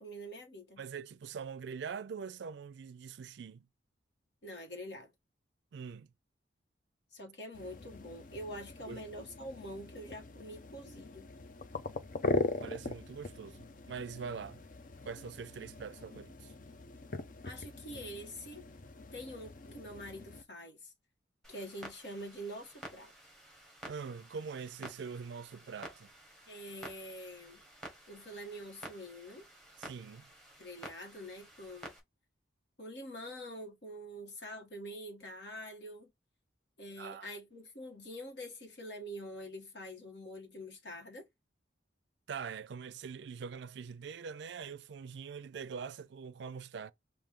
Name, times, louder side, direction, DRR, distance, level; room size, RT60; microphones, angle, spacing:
voice 1, 0.0-0.8 4.4-5.1 7.1-11.3 17.4-18.6 19.1-20.9 21.5-23.1 26.5-27.6 28.1-29.4 30.6-31.9 32.8-36.1 36.8-41.3, equal, 60° left, 1.4 m, -45 dB
voice 2, 0.8-3.7 5.7-6.1 8.9-9.0 12.6-14.6 15.0-16.5 23.9-26.1 29.8-30.3 37.0-37.3 42.3-46.9, right 6 dB, 65° right, 0.4 m, -43 dB
sound 1, 7.5-20.4, left 2 dB, 45° left, 0.5 m, -41 dB
Clock, 21.4-32.0, right 1 dB, 5° left, 1.6 m, -52 dB
4.9 x 2.5 x 3.7 m
head